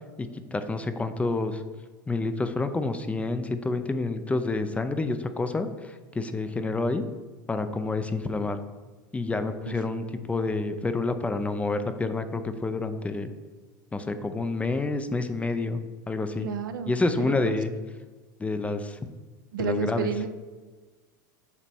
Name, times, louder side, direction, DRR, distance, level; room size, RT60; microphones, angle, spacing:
voice 1, 0.2-1.6 2.1-7.0 7.5-8.6 9.1-13.3 13.9-15.8 16.1-16.5 16.9-17.7 18.4-19.0 19.6-20.1, left 3 dB, 10° left, 9 dB, 0.5 m, -28 dB
voice 2, 16.4-16.9 17.2-17.6 19.5-20.3, right 8 dB, 75° right, 9 dB, 0.5 m, -30 dB
8.0 x 2.9 x 4.3 m, 1.3 s
hypercardioid pair, 85°, 11 cm